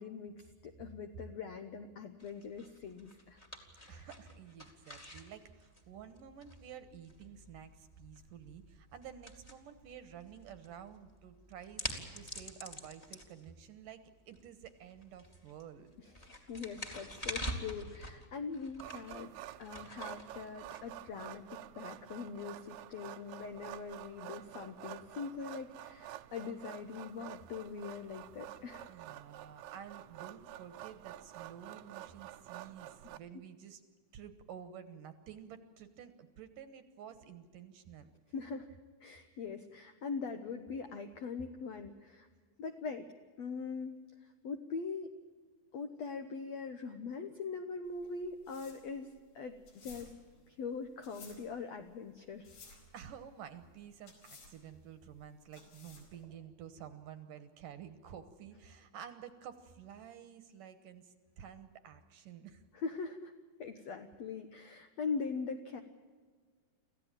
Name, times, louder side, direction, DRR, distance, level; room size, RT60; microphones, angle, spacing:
voice 1, 0.0-3.4 3.8-4.1 16.2-19.3 19.6-28.9 38.3-38.7 39.0-42.3 42.6-43.1 43.4-44.0 44.4-45.1 45.7-49.1 49.3-50.1 50.5-52.5 62.7-63.3 63.6-65.8, left 5 dB, 75° left, 7 dB, 1.6 m, -42 dB
sound 1, 2.2-21.4, equal, 15° left, 1.8 m, -47 dB
voice 2, 3.9-14.0 14.3-15.9 28.9-33.8 34.1-38.1 39.3-39.4 52.9-62.6, right 8 dB, 65° right, 11 dB, 2.5 m, -51 dB
sound 2, 18.8-33.2, right 14 dB, 80° right, 2.8 m, -49 dB
sound 3, 47.8-56.3, left 4 dB, 55° left, 5.9 m, -57 dB
26.0 x 15.5 x 9.0 m, 1.5 s
omnidirectional pair, 4.6 m